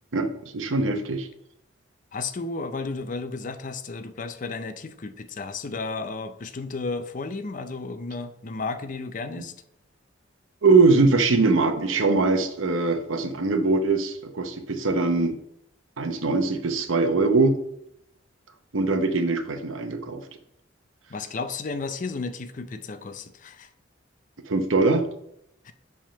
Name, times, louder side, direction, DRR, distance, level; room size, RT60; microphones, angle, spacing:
voice 1, 0.5-1.3 10.6-15.4 16.0-17.5 18.7-20.2 24.5-25.1, right 3 dB, 80° right, 8 dB, 0.9 m, -22 dB
voice 2, 2.1-9.5 21.1-23.7 25.6-25.7, left 3 dB, 40° left, 11 dB, 0.5 m, -33 dB
7.6 x 3.6 x 5.6 m, 0.76 s
head